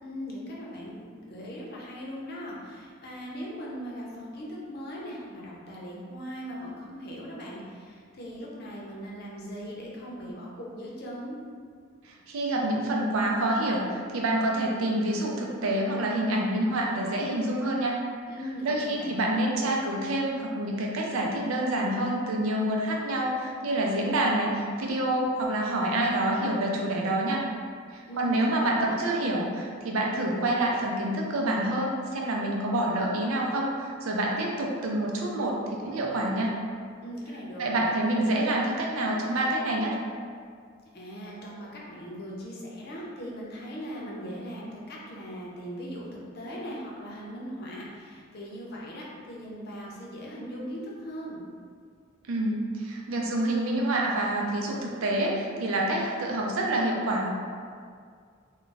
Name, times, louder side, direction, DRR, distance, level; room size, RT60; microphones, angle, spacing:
voice 1, 0.0-11.4 18.3-19.2 28.1-29.0 37.0-37.9 40.9-51.4, equal, 50° left, -4 dB, 0.6 m, -39 dB
voice 2, 12.0-18.0 18.6-27.4 27.9-36.5 37.6-39.9 52.3-57.4, right 1 dB, 85° right, -1 dB, 0.5 m, -27 dB
2.4 x 2.2 x 3.8 m, 2.1 s
head